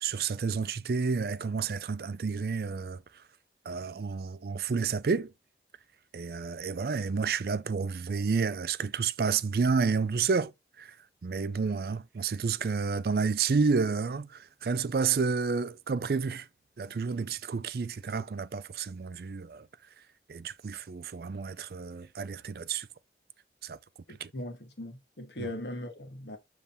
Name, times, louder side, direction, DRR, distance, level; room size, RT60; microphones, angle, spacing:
voice 1, 0.0-3.2 3.7-5.3 6.1-10.5 10.8-11.0 11.2-16.5 16.8-19.7 20.3-22.9 23.6-23.8 24.2-24.3 25.4-25.5, right 5 dB, 60° right, 0.4 m, -30 dB
voice 2, 24.1-26.4, left 1 dB, 75° left, 1.6 m, -39 dB
7.2 x 3.3 x 4.0 m
head